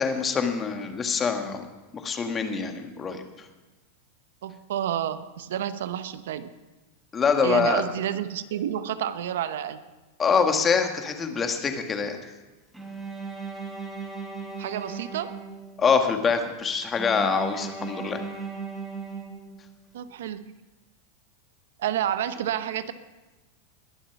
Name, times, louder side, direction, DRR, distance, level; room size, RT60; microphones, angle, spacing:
voice 1, 0.0-1.6 2.0-3.2 7.1-7.8 10.2-12.2 15.8-18.2, left 5 dB, 20° left, 6 dB, 1.5 m, -24 dB
voice 2, 4.4-6.5 7.4-9.8 14.6-15.4 19.9-20.4 21.8-22.9, right 10 dB, 80° right, 12 dB, 0.8 m, -29 dB
Bowed string instrument, 12.7-16.0 16.9-19.9, right 4 dB, 5° right, 3.7 m, -37 dB
21.0 x 7.1 x 5.8 m, 1.2 s
supercardioid pair, 130°, 0 cm